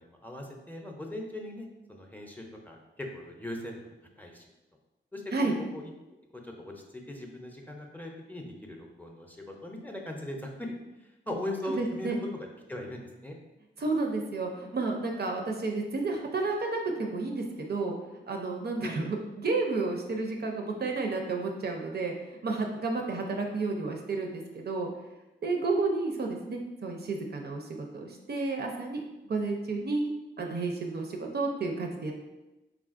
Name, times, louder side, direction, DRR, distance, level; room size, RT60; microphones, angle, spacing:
voice 1, 0.0-4.4 5.1-10.7 11.0-13.4 18.8-19.1, left 1 dB, 10° left, 1 dB, 0.5 m, -40 dB
voice 2, 11.8-12.2 13.8-18.0 18.3-24.9 25.4-27.7 27.9-30.1 30.4-32.1, right 3 dB, 50° right, 2 dB, 0.4 m, -31 dB
3.2 x 2.4 x 2.4 m, 1.0 s
cardioid pair, 40°, 21 cm